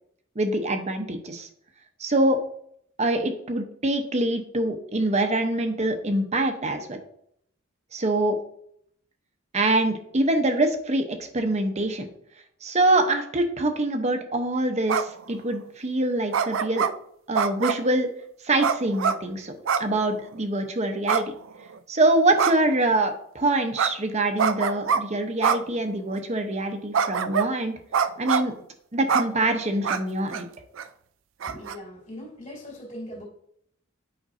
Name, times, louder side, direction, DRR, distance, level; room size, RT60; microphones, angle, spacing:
voice 1, 0.4-1.5 2.0-2.4 3.0-7.0 7.9-8.4 9.5-12.1 12.6-16.9 17.3-18.1 18.4-19.5 19.8-21.3 21.9-27.8 28.2-28.5 28.9-30.5, right 2 dB, 35° right, 6 dB, 0.8 m, -24 dB
sound 1, 14.9-15.2 16.3-16.9 17.3-17.9 18.6-19.2 19.6-19.9 20.2-20.3 21.1-21.8 22.4-22.8 23.8-23.9 24.4-25.0 25.4-25.6 26.1-26.2 26.9-27.5 27.9-28.5 29.1-29.2 29.8-30.0 30.3-30.4 30.8-30.9 31.4-31.7, right 6 dB, 65° right, 0.4 m, -24 dB
voice 2, 31.5-33.2, equal, 35° left, -4 dB, 2.6 m, -40 dB
8.9 x 5.2 x 2.6 m, 0.67 s
head